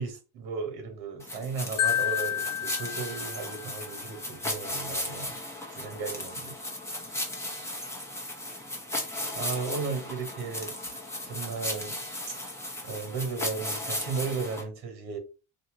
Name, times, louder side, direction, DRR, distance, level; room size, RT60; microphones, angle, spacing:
voice 1, 0.0-5.3 5.7-6.5 6.9-7.0 9.3-10.7 11.2-12.4 12.8-15.2, right 4 dB, 55° right, 1.6 m, -35 dB
sound 1, 1.2-14.6, left 1 dB, 5° left, 0.9 m, -36 dB
Marimba xylophone, 1.8-3.9, left 10 dB, 45° left, 1.1 m, -30 dB
2.8 x 2.8 x 3.8 m
cardioid pair, 130°, 45 cm